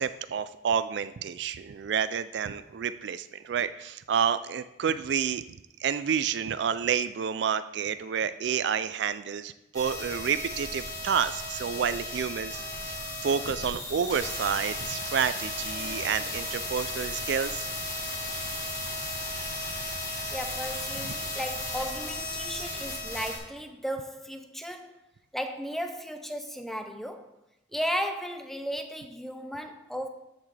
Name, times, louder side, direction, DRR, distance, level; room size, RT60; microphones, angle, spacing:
voice 1, 0.0-5.4 5.8-12.9 13.2-17.7, right 7 dB, 65° right, 0.3 m, -29 dB
sound 1, 9.7-23.4, left 1 dB, 20° left, 1.8 m, -35 dB
sound 2, 15.7-19.6, left 3 dB, 55° left, 2.9 m, -54 dB
voice 2, 20.3-24.9 25.3-27.3 27.7-30.1, equal, ahead, 0.6 m, -35 dB
13.5 x 6.0 x 3.3 m
head